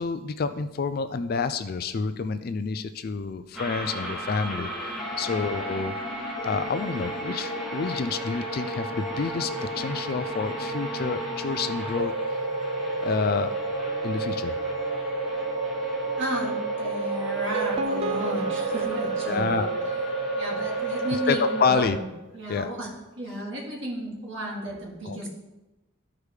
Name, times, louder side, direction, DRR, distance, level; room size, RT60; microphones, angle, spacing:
voice 1, 0.0-4.7 5.2-5.9 6.4-12.1 13.0-13.6 14.0-14.6 19.2-19.7 21.3-22.0 22.5-22.7 25.1-25.3, left 5 dB, 45° left, 10 dB, 0.3 m, -28 dB
sound 1, 3.5-21.9, right 2 dB, ahead, 1.9 m, -31 dB
voice 2, 16.2-20.0 20.3-22.1 22.3-22.9 23.2-25.3, right 1 dB, 60° right, -3 dB, 2.2 m, -34 dB
sound 2, 17.3-20.5, right 4 dB, 30° right, 0.4 m, -34 dB
13.5 x 4.8 x 3.3 m, 1.0 s
head